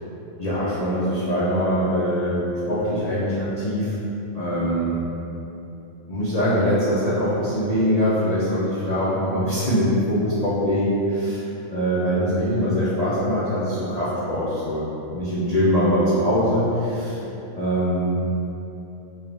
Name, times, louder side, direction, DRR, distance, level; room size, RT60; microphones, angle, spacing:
voice 1, 0.4-4.0 4.3-5.0 6.1-11.4 11.7-17.2 17.6-18.1, equal, 50° left, -11 dB, 0.5 m, -22 dB
4.0 x 2.4 x 3.2 m, 3.0 s
omnidirectional pair, 1.3 m